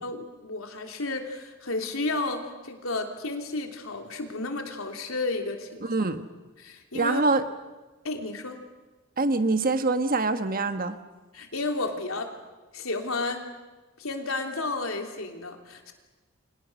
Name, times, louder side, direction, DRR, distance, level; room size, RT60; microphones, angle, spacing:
voice 1, 0.0-5.9 6.6-7.2 8.0-8.6 11.3-12.3 12.7-13.4 14.0-15.9, left 3 dB, 85° left, 4 dB, 3.2 m, -32 dB
voice 2, 5.8-6.3 6.9-7.4 9.2-11.0, right 3 dB, 45° right, 9 dB, 1.3 m, -24 dB
29.5 x 25.5 x 6.3 m, 1.2 s
head